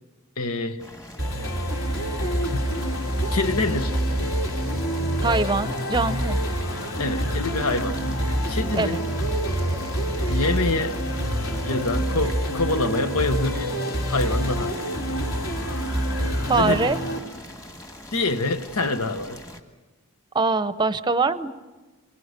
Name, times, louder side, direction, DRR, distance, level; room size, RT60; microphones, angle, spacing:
voice 1, 0.4-0.8 2.5-2.7 3.3-4.0 7.0-8.0 8.5-9.0 10.3-11.0 11.6-13.8 14.1-14.8 16.5-17.2 18.1-19.4, left 2 dB, 85° left, 1.2 m, -26 dB
Boiling, 0.8-19.6, left 1 dB, 15° left, 1.7 m, -43 dB
sound 1, 1.2-17.2, equal, 65° left, 3.5 m, -26 dB
voice 2, 5.2-6.4 8.7-9.0 16.5-17.0 20.3-21.5, right 3 dB, 20° right, 0.7 m, -23 dB
28.5 x 24.0 x 6.6 m
head